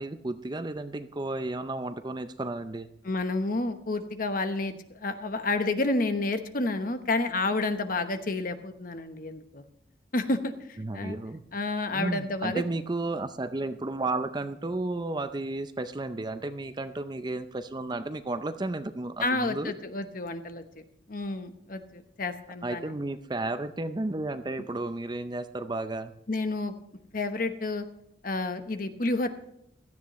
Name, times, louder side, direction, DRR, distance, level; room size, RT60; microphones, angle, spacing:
voice 1, 0.0-2.9 10.8-11.4 11.9-19.7 22.6-26.1, right 2 dB, 25° right, 10 dB, 0.5 m, -33 dB
voice 2, 3.0-9.6 10.1-11.2 11.5-12.6 19.2-20.8 21.1-22.9 26.3-26.8 27.1-27.8 28.2-29.3, left 2 dB, 50° left, 8 dB, 1.0 m, -30 dB
16.5 x 13.0 x 3.1 m, 0.77 s
head